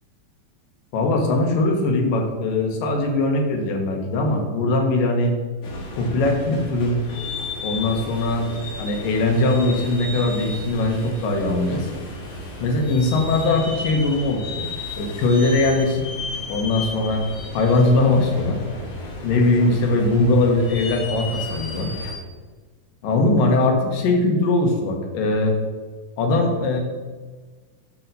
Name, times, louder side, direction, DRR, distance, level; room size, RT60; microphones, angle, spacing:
voice 1, 0.9-5.3 6.0-7.0 7.6-8.5 8.8-11.9 12.6-14.7 15.0-16.0 16.5-17.2 17.5-18.6 19.2-21.9 23.0-25.6 26.2-26.8, left 2 dB, 90° left, 2 dB, 2.9 m, -20 dB
sound 1, 5.6-22.1, left 2 dB, 55° left, 2.5 m, -34 dB
8.5 x 4.5 x 6.8 m, 1.4 s
omnidirectional pair, 3.8 m